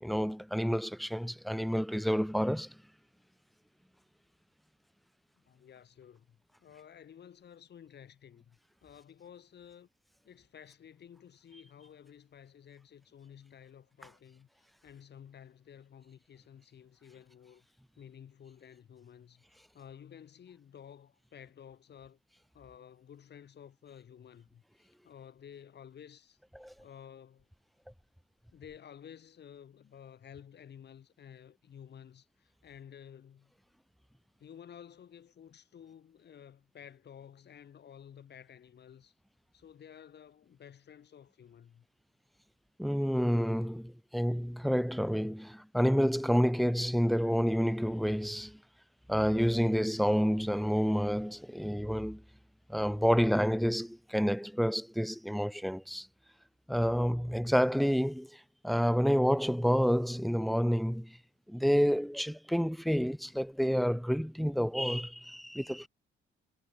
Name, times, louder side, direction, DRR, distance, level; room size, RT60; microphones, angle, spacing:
voice 1, 0.0-2.7 26.5-26.7 42.8-48.6 49.1-52.2 52.7-56.1 56.7-61.2 61.5-65.9, equal, ahead, 2.8 m, -29 dB
voice 2, 5.4-9.9 10.2-17.7 18.0-19.4 19.7-22.2 22.5-26.4 26.8-27.5 28.5-33.5 34.4-39.1 39.5-41.9, left 8 dB, 60° left, 6.9 m, -53 dB
cardioid pair, 90°, 20 cm